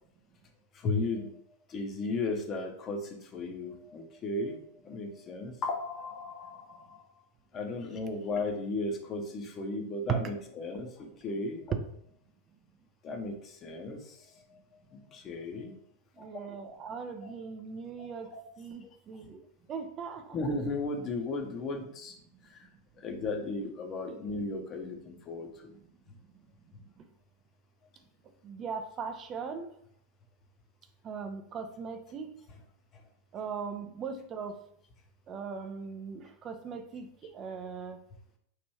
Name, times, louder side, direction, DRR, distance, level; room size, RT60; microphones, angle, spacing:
voice 1, 0.7-1.4 1.7-4.6 4.8-7.0 7.5-11.6 13.0-14.6 14.9-15.7 16.2-16.3 17.2-17.3 18.0-18.4 18.8-18.9 20.3-22.1 22.5-22.6 23.0-25.7, left 2 dB, 30° left, 3 dB, 0.7 m, -35 dB
voice 2, 16.2-18.3 18.6-19.4 19.7-20.4 28.4-29.7 31.0-32.3 33.3-34.6 35.3-38.0, right 5 dB, 30° right, 8 dB, 0.4 m, -39 dB
3.2 x 2.6 x 4.2 m, 0.68 s
figure-of-eight pair, 90°, 0 cm